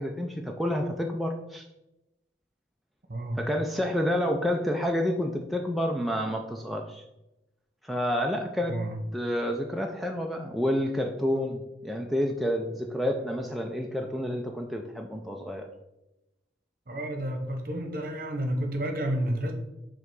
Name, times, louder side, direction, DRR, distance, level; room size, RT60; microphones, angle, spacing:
voice 1, 0.0-1.7 3.4-7.0 7.8-8.8 9.1-15.7, equal, ahead, 1 dB, 0.3 m, -29 dB
voice 2, 3.1-3.4 8.7-9.0 16.9-19.5, right 1 dB, 50° right, 4 dB, 1.0 m, -30 dB
5.4 x 3.8 x 4.7 m, 0.94 s
head